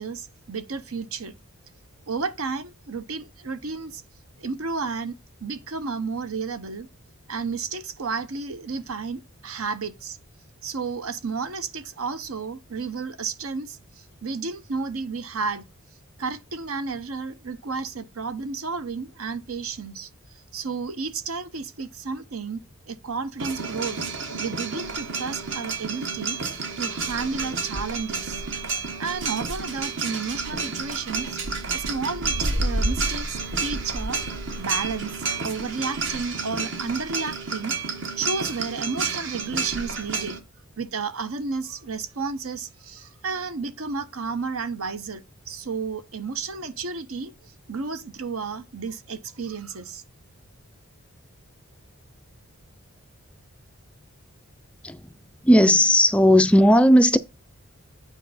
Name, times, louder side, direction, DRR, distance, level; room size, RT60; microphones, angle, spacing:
voice 1, 0.0-1.4 2.1-4.0 4.4-6.9 7.3-10.2 10.6-15.7 16.2-20.1 20.5-22.6 22.9-24.1 24.4-26.4 26.8-28.4 29.0-31.4 31.7-37.8 38.2-40.4 40.8-50.0, right 4 dB, 75° right, 0.8 m, -32 dB
sound 1, 23.4-40.4, right 3 dB, 55° right, 1.2 m, -30 dB
voice 2, 55.4-57.2, equal, 5° left, 0.3 m, -16 dB
9.1 x 4.5 x 4.1 m
head